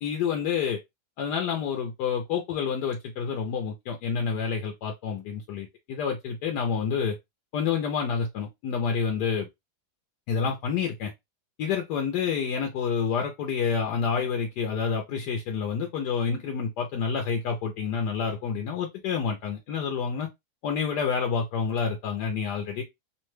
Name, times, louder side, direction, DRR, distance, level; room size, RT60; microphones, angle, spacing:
voice 1, 0.0-0.8 1.2-7.2 7.5-9.5 10.3-11.1 11.6-20.3 20.6-22.8, left 6 dB, 90° left, 1.2 m, -28 dB
3.0 x 2.1 x 3.1 m
omnidirectional pair, 1.7 m